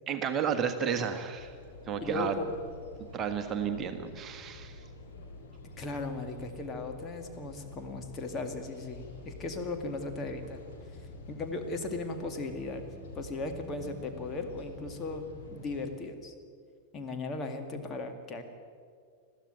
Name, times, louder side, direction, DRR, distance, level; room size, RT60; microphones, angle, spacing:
voice 1, 0.1-1.5 1.9-2.3 3.1-4.8, right 7 dB, 30° right, 6 dB, 1.5 m, -32 dB
sound 1, 1.4-15.9, left 2 dB, 60° left, 3.6 m, -48 dB
voice 2, 2.0-2.5 5.8-10.6 11.3-16.3 16.9-18.4, left 3 dB, 25° left, 5 dB, 2.2 m, -37 dB
21.0 x 14.5 x 9.3 m, 2.1 s
figure-of-eight pair, 90°, 0 cm